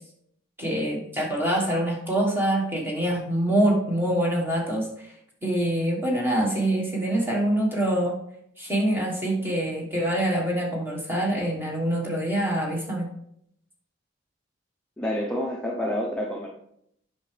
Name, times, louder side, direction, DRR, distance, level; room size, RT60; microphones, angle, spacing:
voice 1, 0.6-4.9 5.4-8.1 8.6-13.1, right 1 dB, 10° right, -2 dB, 1.4 m, -25 dB
voice 2, 15.0-16.5, equal, 5° left, -3 dB, 0.6 m, -28 dB
8.0 x 5.8 x 3.3 m, 0.74 s
head